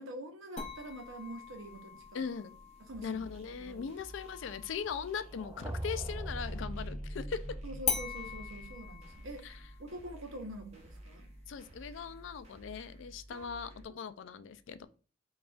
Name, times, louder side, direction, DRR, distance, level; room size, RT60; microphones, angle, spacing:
voice 1, 0.0-2.2 2.8-3.2 3.6-3.9 7.6-11.3 13.3-14.1, right 1 dB, 80° right, 0.7 m, -46 dB
sound 1, 0.6-6.2 7.8-12.8, left 7 dB, 35° left, 0.6 m, -43 dB
voice 2, 2.1-2.6 3.0-7.5 9.4-9.6 11.5-14.9, left 6 dB, 65° left, 0.4 m, -40 dB
sound 2, 2.9-13.9, right 1 dB, 30° right, 0.8 m, -53 dB
sound 3, 5.3-9.3, right 1 dB, 15° right, 0.4 m, -41 dB
4.9 x 2.4 x 2.4 m
head